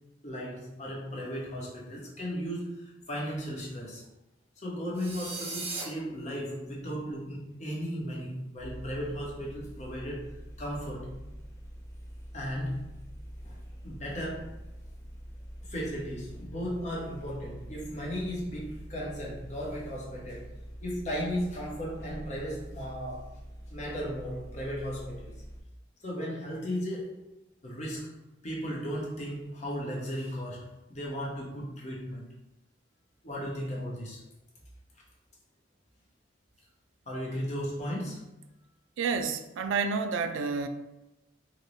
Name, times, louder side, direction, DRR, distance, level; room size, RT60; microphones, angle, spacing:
voice 1, 0.2-4.0 4.6-10.3 10.6-11.1 12.3-12.8 13.4-13.6 13.8-14.5 15.6-20.5 20.8-23.2 23.7-25.4 26.0-27.1 27.6-28.1 28.4-32.2 33.2-34.2 37.1-38.2, equal, 40° left, -4 dB, 0.9 m, -36 dB
sound 1, 4.9-5.8, right 3 dB, 35° right, 0.7 m, -37 dB
sound 2, 8.6-25.6, equal, 15° left, 0.4 m, -45 dB
voice 2, 39.0-40.7, right 5 dB, 90° right, 8 dB, 0.3 m, -29 dB
3.8 x 2.1 x 3.1 m, 0.98 s
head